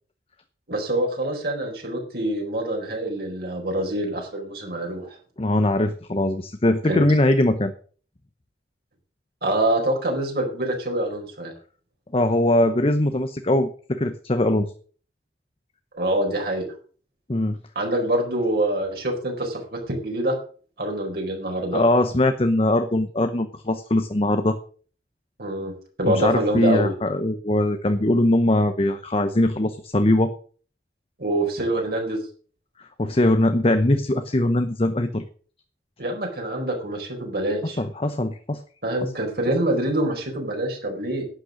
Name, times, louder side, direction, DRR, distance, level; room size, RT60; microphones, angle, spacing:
voice 1, 0.7-5.1 6.9-7.0 9.4-11.5 15.9-16.6 17.7-20.4 20.8-21.8 25.4-25.7 26.0-26.9 31.2-32.2 36.0-37.8 38.8-41.2, right 1 dB, 60° right, 1 dB, 4.4 m, -25 dB
voice 2, 5.4-7.7 12.1-14.7 17.3-17.6 21.7-24.6 26.1-30.3 33.0-35.2 37.8-38.6, left 1 dB, 35° left, 9 dB, 0.8 m, -21 dB
11.5 x 9.1 x 6.5 m, 0.43 s
head